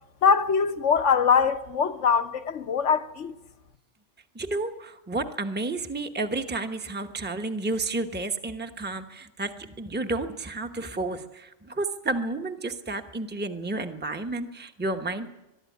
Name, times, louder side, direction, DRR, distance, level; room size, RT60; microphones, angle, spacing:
voice 1, 0.2-3.3, left 6 dB, 70° left, 1.3 m, -22 dB
voice 2, 4.3-15.3, right 2 dB, 10° right, 1.0 m, -31 dB
23.0 x 12.5 x 9.4 m
omnidirectional pair, 1.3 m